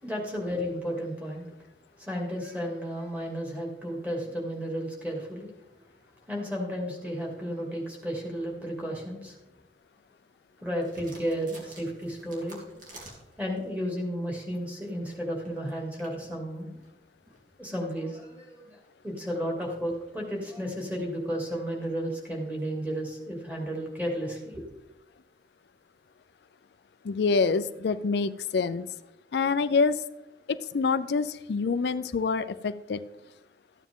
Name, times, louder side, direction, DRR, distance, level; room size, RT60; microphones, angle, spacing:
voice 1, 0.0-1.5 2.0-5.5 6.3-9.4 10.6-12.6 13.1-16.7 17.6-18.8 19.0-24.6, equal, 10° right, -1 dB, 2.4 m, -33 dB
sound 1, 10.8-13.8 14.3-22.9, right 1 dB, 45° right, 2.9 m, -54 dB
voice 2, 27.0-28.9 29.3-30.0 30.5-33.0, left 4 dB, 65° left, 12 dB, 0.4 m, -26 dB
14.0 x 9.2 x 3.7 m, 0.99 s
head